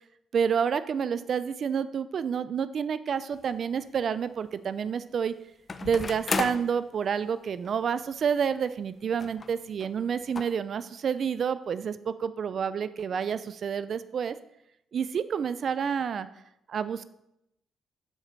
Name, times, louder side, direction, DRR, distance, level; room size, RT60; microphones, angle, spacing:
voice 1, 0.3-5.3 5.8-14.4 14.9-16.3 16.7-17.1, right 7 dB, 55° right, 14 dB, 0.4 m, -29 dB
sound 1, 3.3-3.4 5.7-6.7 7.6-7.7 8.0-8.1 9.2-9.5 9.8-9.9 10.3-10.4, left 4 dB, 35° left, 0.6 m, -32 dB
7.1 x 5.0 x 6.7 m, 0.79 s
cardioid pair, 90°, 0 cm